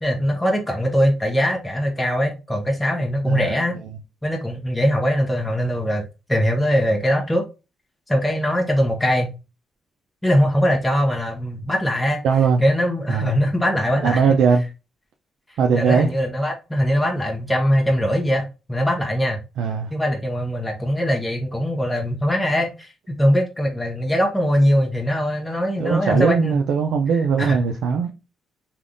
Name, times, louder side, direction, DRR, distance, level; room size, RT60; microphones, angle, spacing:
voice 1, 0.0-3.8 4.2-6.0 6.3-7.4 8.1-9.3 10.2-12.2 12.6-14.2 15.7-19.4 19.9-26.6 27.4-27.6, equal, 10° left, 0.7 m, -21 dB
voice 2, 3.2-3.6 12.2-12.6 13.1-13.4 14.0-14.6 15.6-16.1 19.6-19.9 25.8-28.1, right 6 dB, 80° right, 0.4 m, -19 dB
3.4 x 2.3 x 2.5 m
cardioid pair, 90°, 0 cm